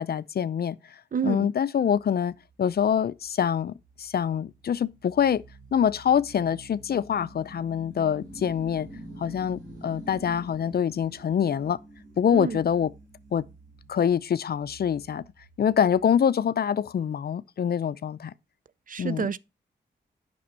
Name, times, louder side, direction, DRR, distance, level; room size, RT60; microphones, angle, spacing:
voice 1, 0.0-5.4 5.7-8.9 9.2-11.8 12.2-12.9 13.3-13.5 13.9-15.3 15.6-18.3 19.0-19.3, left 8 dB, 55° left, 0.5 m, -25 dB
voice 2, 1.1-1.5 12.3-12.6 18.9-19.4, right 7 dB, 45° right, 0.5 m, -28 dB
sound 1, 1.9-16.1, right 1 dB, 80° right, 3.1 m, -48 dB
8.5 x 6.2 x 4.3 m
cardioid pair, 50°, 19 cm